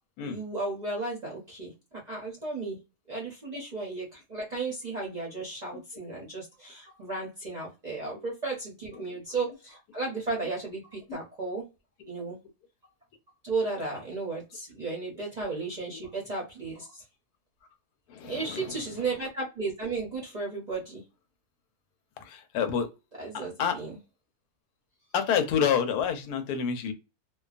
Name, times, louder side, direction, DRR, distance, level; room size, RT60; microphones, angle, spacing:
voice 1, 0.2-2.8 3.1-11.6 12.1-12.4 13.4-17.0 18.2-21.0 23.2-24.0, right 3 dB, 45° right, 0.6 m, -34 dB
voice 2, 18.1-18.8 22.2-22.9 23.3-23.8 25.1-26.9, left 7 dB, 85° left, 1.1 m, -28 dB
2.6 x 2.3 x 2.4 m
omnidirectional pair, 1.6 m